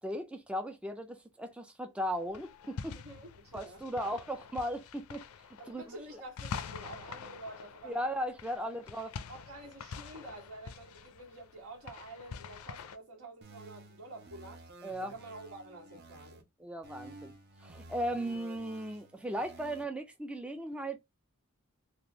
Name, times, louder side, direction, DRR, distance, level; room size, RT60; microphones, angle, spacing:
voice 1, 0.0-3.0 3.5-5.2 5.7-5.8 7.8-9.1 14.8-15.1 16.6-17.3 17.6-21.0, equal, 5° right, 0.3 m, -37 dB
sound 1, 2.1-13.0, left 6 dB, 80° left, 0.4 m, -46 dB
voice 2, 2.9-4.0 5.6-8.3 9.3-14.6 15.0-16.5, right 2 dB, 75° right, 1.6 m, -49 dB
sound 2, 13.4-16.4 16.8-19.8, right 2 dB, 45° right, 0.7 m, -52 dB
3.5 x 2.5 x 2.8 m
head